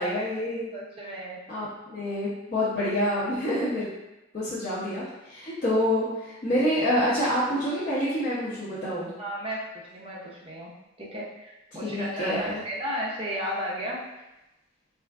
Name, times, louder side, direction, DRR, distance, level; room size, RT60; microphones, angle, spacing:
voice 1, 0.0-0.7 1.5-3.9 4.3-9.1 11.8-12.6, equal, 40° left, -10 dB, 0.6 m, -27 dB
voice 2, 0.7-1.4 9.2-10.7 11.0-14.3, equal, 25° right, -4 dB, 0.5 m, -34 dB
3.4 x 2.4 x 2.3 m, 0.95 s
head